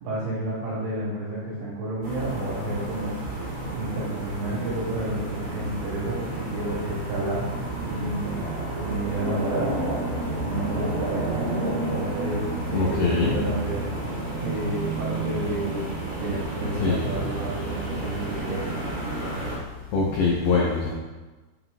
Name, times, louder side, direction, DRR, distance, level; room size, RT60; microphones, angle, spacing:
voice 1, 0.0-3.2 3.7-8.5 8.8-9.7 10.4-13.9 14.4-18.8, right 1 dB, 75° right, -7 dB, 3.0 m, -31 dB
sound 1, 2.0-19.6, right 2 dB, 50° right, 2.6 m, -30 dB
voice 2, 12.7-13.4 16.8-17.1 19.5-19.6 19.9-20.9, left 4 dB, 80° left, -4 dB, 2.3 m, -23 dB
7.8 x 5.6 x 2.3 m, 1.2 s
omnidirectional pair, 5.5 m